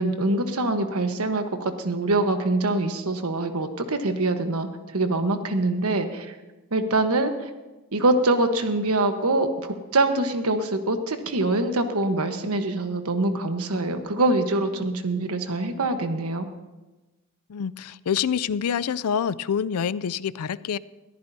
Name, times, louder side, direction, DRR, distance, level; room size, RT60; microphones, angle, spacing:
voice 1, 0.0-6.4 6.7-7.5 7.9-16.5, right 2 dB, 85° right, 7 dB, 1.2 m, -24 dB
voice 2, 17.5-20.8, left 7 dB, 90° left, 18 dB, 0.4 m, -26 dB
21.0 x 14.0 x 2.8 m, 1.1 s
head